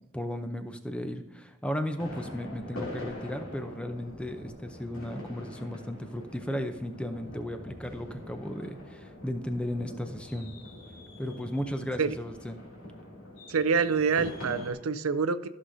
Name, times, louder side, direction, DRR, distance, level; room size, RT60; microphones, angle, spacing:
voice 1, 0.1-10.5 11.2-12.6, equal, 5° left, 7 dB, 0.6 m, -35 dB
sound 1, 2.0-14.7, left 1 dB, 75° left, 2.7 m, -44 dB
voice 2, 13.5-15.5, right 5 dB, 85° right, 13 dB, 0.5 m, -26 dB
14.5 x 6.4 x 2.7 m, 1.0 s
head